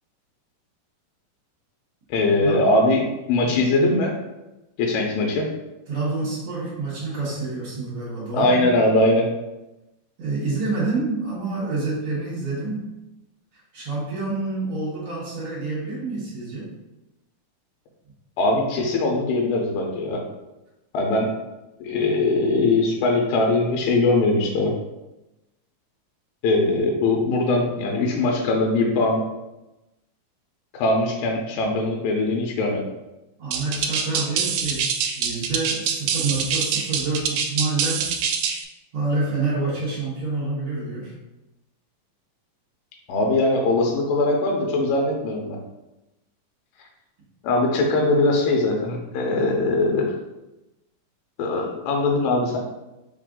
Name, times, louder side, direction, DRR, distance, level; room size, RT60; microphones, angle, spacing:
voice 1, 2.1-4.1 4.8-5.5 8.3-9.3 18.4-20.2 20.9-21.3 21.8-24.7 26.4-29.2 30.7-32.8 43.1-45.6 47.4-50.1 51.4-52.6, left 2 dB, 80° left, 0 dB, 2.4 m, -21 dB
voice 2, 5.9-8.6 10.2-12.9 13.7-16.7 33.4-34.9 35.1-38.1 38.9-41.1, right 3 dB, 65° right, -7 dB, 1.4 m, -27 dB
sound 1, 33.5-38.6, right 7 dB, 80° right, 2.3 m, -25 dB
5.5 x 2.5 x 3.7 m, 0.97 s
omnidirectional pair, 4.2 m